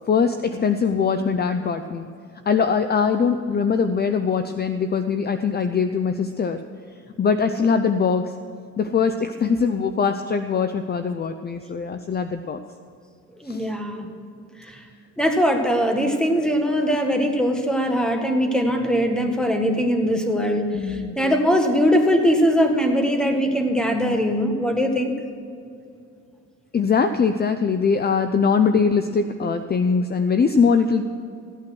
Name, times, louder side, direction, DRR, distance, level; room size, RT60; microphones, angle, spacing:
voice 1, 0.0-2.1 2.5-6.6 7.2-8.3 8.8-12.6 13.4-13.7 20.7-21.3 26.7-31.0, left 5 dB, 35° left, 9 dB, 0.6 m, -22 dB
voice 2, 13.4-14.1 14.7-14.8 15.2-25.1, equal, ahead, 4 dB, 1.8 m, -21 dB
15.5 x 8.8 x 6.2 m, 2.4 s
cardioid pair, 90°, 30 cm